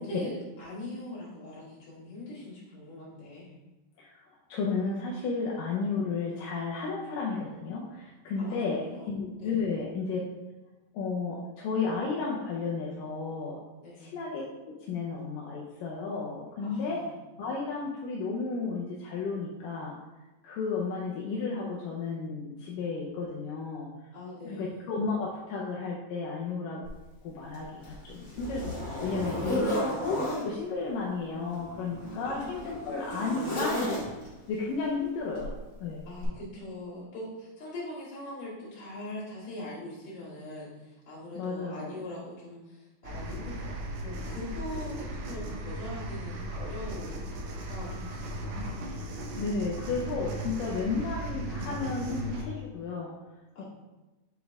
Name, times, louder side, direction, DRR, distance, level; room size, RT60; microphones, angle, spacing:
voice 1, 0.0-3.6 8.4-9.1 9.4-9.6 13.8-14.2 16.6-17.1 24.1-24.9 32.2-33.0 36.0-48.6 53.5-53.6, left 1 dB, 50° left, -9 dB, 3.4 m, -42 dB
voice 2, 4.5-10.2 10.9-13.6 14.0-17.1 17.4-19.9 20.4-23.9 24.4-26.8 27.2-34.1 34.5-36.0 41.4-42.0 48.9-53.1 53.6-53.7, left 4 dB, 75° left, -3 dB, 2.1 m, -33 dB
Zipper (clothing), 26.8-27.0 27.5-30.5 31.4-34.4 35.4-35.6 36.2-36.3, left 1 dB, 30° left, 1.8 m, -34 dB
sound 1, 43.0-52.4, right 1 dB, 75° right, 1.9 m, -37 dB
7.3 x 4.7 x 3.5 m, 1.1 s
omnidirectional pair, 4.4 m